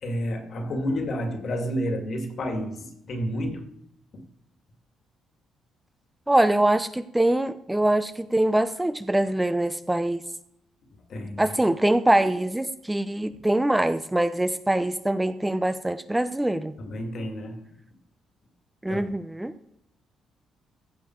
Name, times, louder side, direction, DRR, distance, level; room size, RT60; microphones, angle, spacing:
voice 1, 0.0-3.7 4.1-4.3 11.1-11.5 13.3-13.4 16.8-17.6 18.9-19.0, equal, 55° left, 2.3 m, -30 dB
voice 2, 6.3-10.2 11.4-16.7 18.8-19.6, right 1 dB, 10° right, 0.6 m, -23 dB
15.0 x 7.2 x 4.6 m
cardioid pair, 90°, 0 cm